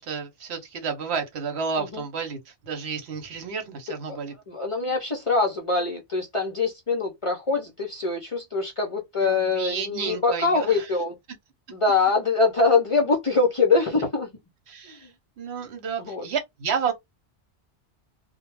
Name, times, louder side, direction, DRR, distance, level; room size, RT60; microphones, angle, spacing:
voice 1, 0.0-4.3 9.2-10.9 14.7-16.9, right 6 dB, 75° right, 1.0 m, -31 dB
voice 2, 4.5-11.1 11.7-14.3 16.0-16.3, left 3 dB, 40° left, 0.5 m, -23 dB
2.2 x 2.1 x 3.0 m
omnidirectional pair, 1.1 m